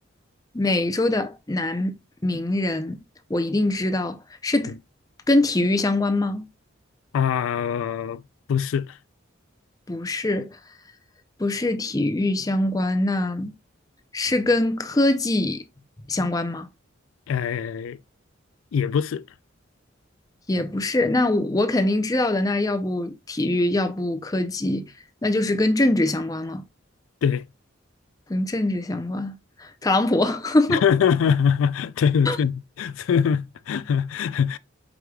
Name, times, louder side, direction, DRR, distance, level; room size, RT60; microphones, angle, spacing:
voice 1, 0.5-1.9 2.2-3.0 3.3-4.2 4.4-4.8 5.3-6.5 9.9-10.6 11.4-13.5 14.1-15.6 16.1-16.7 20.5-24.9 25.2-26.6 28.3-30.8 32.3-32.4, left 2 dB, 15° left, 0.5 m, -23 dB
voice 2, 7.1-8.2 8.5-9.0 17.3-18.0 18.7-19.2 27.2-27.4 30.7-34.6, left 7 dB, 80° left, 0.3 m, -23 dB
4.9 x 4.7 x 2.3 m
head